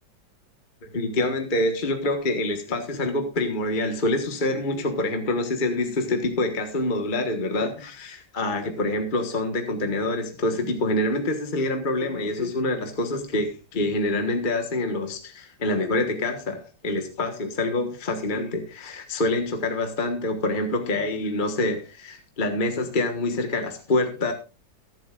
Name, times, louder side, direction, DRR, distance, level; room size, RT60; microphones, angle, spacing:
voice 1, 0.8-24.3, left 2 dB, 30° left, 5 dB, 1.4 m, -26 dB
23.0 x 7.9 x 2.5 m, 0.31 s
omnidirectional pair, 2.0 m